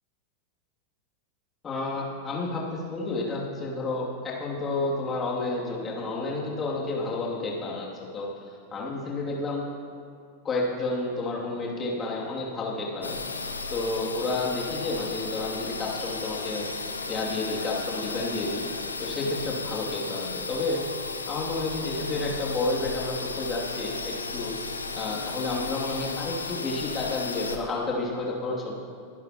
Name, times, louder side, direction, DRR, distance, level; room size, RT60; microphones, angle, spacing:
voice 1, 1.6-7.9 8.1-8.3 8.7-9.6 10.4-13.2 13.7-16.7 17.1-18.6 19.0-20.8 21.3-24.6 24.9-28.7, left 2 dB, 20° left, -4 dB, 2.7 m, -30 dB
sound 1, 13.0-27.6, left 3 dB, 80° left, 0.9 m, -34 dB
23.0 x 11.0 x 3.0 m, 2.3 s
figure-of-eight pair, 90°, 0 cm